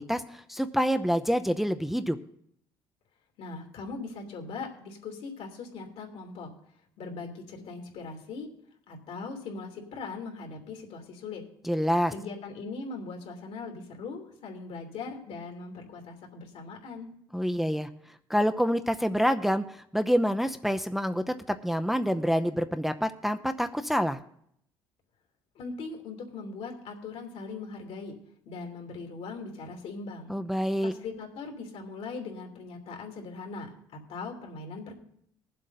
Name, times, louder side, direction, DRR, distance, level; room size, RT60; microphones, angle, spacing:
voice 1, 0.0-2.2 11.6-12.1 17.3-17.9 18.3-24.2 30.3-30.9, equal, ahead, 8 dB, 0.7 m, -27 dB
voice 2, 3.4-6.5 7.0-8.5 8.9-11.4 12.1-17.1 25.5-28.1 28.4-30.3 30.8-34.9, left 4 dB, 65° left, 3 dB, 3.0 m, -40 dB
19.5 x 7.7 x 4.1 m, 0.67 s
hypercardioid pair, 65°, 11 cm